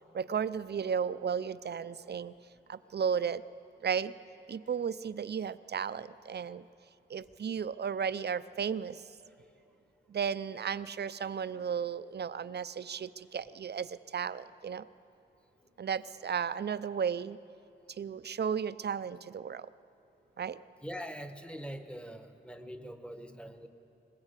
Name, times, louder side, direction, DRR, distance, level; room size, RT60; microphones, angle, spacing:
voice 1, 0.1-2.3 2.7-3.4 3.8-4.1 4.5-6.6 7.1-9.1 10.1-14.8 15.8-17.4 17.9-19.7 20.4-20.6, right 7 dB, 60° right, 15 dB, 0.5 m, -34 dB
voice 2, 20.8-23.7, equal, 5° left, 8 dB, 1.1 m, -43 dB
21.0 x 19.5 x 8.2 m, 2.7 s
wide cardioid pair, 135°, 20 cm